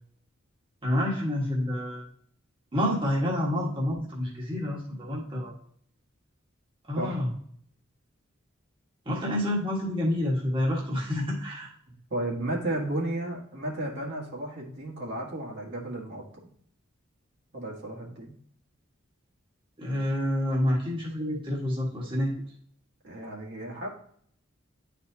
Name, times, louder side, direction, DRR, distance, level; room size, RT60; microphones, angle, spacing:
voice 1, 0.8-2.1 2.7-5.5 6.9-7.3 9.0-11.7 19.8-22.3, left 1 dB, 25° right, -4 dB, 1.4 m, -28 dB
voice 2, 12.1-16.2 17.5-18.3 23.0-23.9, right 1 dB, 55° right, -2 dB, 1.6 m, -33 dB
10.5 x 4.2 x 2.7 m, 0.62 s
head